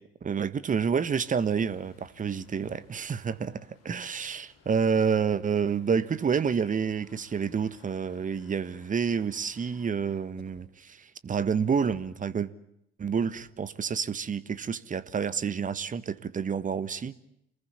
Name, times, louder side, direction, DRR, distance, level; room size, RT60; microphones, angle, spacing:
voice 1, 0.2-12.5 13.0-17.1, right 6 dB, 25° right, 1.3 m, -29 dB
sound 1, 1.0-10.2, left 5 dB, 50° left, 5.0 m, -61 dB
sound 2, 8.9-9.3 10.4-10.7 11.7-12.1 13.2-13.5, right 1 dB, 85° right, 5.6 m, -55 dB
28.0 x 21.0 x 8.5 m
figure-of-eight pair, 55°, 32 cm